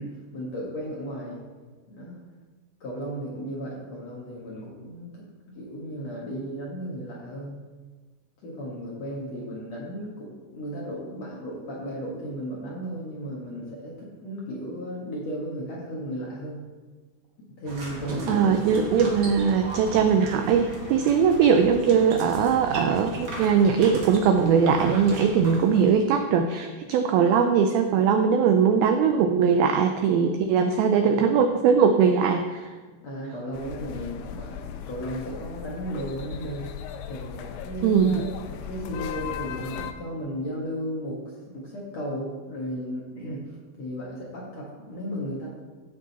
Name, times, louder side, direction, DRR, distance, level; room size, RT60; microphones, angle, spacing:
voice 1, 0.0-1.4 1.9-2.2 2.8-7.6 8.4-16.7 17.6-18.6 31.0-31.1 33.0-36.7 37.1-38.0 38.5-41.2 41.5-45.5, equal, 55° left, -5 dB, 2.0 m, -35 dB
sound 1, 17.6-26.0, right 1 dB, 50° right, 1.5 m, -37 dB
voice 2, 18.3-32.7 37.8-38.3, right 6 dB, 85° right, 6 dB, 2.1 m, -21 dB
sound 2, 33.5-39.9, left 9 dB, 80° left, 2.5 m, -37 dB
15.5 x 6.6 x 4.1 m, 1.4 s
omnidirectional pair, 5.0 m